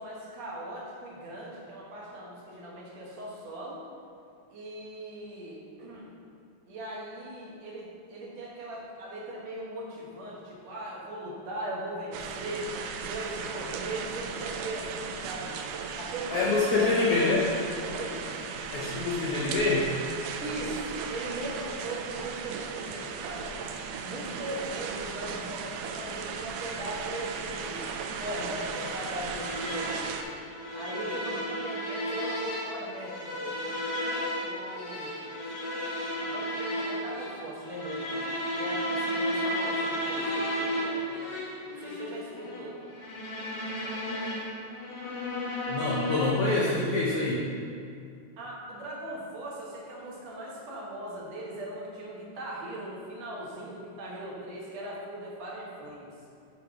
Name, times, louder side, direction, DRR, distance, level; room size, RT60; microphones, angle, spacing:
voice 1, 0.0-3.8 4.5-6.1 6.7-12.7 13.1-15.6 16.0-17.4 17.9-18.2 20.4-23.6 24.0-27.9 28.2-30.0 30.7-33.7 34.4-35.3 36.2-41.3 41.7-42.8 43.8-44.0 48.4-56.1, right 1 dB, 65° right, -4 dB, 2.1 m, -39 dB
sound 1, 12.1-30.2, right 6 dB, 85° right, 2.1 m, -37 dB
voice 2, 16.3-17.5 18.7-19.9 45.7-47.5, left 3 dB, 85° left, -4 dB, 1.2 m, -26 dB
sound 2, 28.6-46.6, equal, 60° left, 2.1 m, -33 dB
7.9 x 4.4 x 4.8 m, 2.4 s
omnidirectional pair, 3.6 m